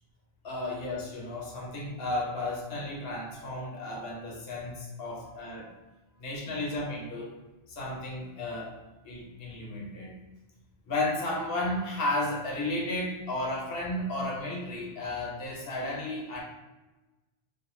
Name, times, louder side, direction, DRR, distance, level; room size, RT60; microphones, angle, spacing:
voice 1, 0.4-5.7 6.2-7.4 7.7-8.8 9.0-10.1 10.9-16.4, left 1 dB, 70° left, -2 dB, 0.9 m, -33 dB
2.5 x 2.1 x 3.0 m, 1.1 s
omnidirectional pair, 1.0 m